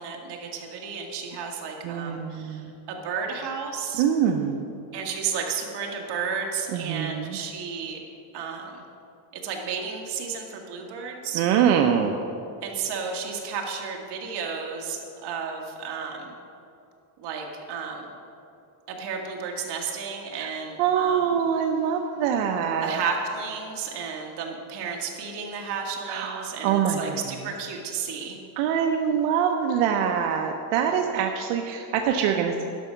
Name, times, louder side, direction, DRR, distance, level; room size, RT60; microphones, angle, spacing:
voice 1, 0.0-4.0 4.9-8.0 8.3-8.8 9.4-11.4 12.6-16.3 17.2-18.1 18.9-21.3 22.8-28.4, right 6 dB, 50° right, 0 dB, 1.6 m, -32 dB
voice 2, 1.8-2.7 3.9-4.7 6.7-7.4 11.3-12.1 20.4-20.5 20.8-23.0 26.1-27.2 28.6-32.7, right 8 dB, 80° right, 3 dB, 0.8 m, -24 dB
11.0 x 6.2 x 5.6 m, 2.7 s
cardioid pair, 150°, 49 cm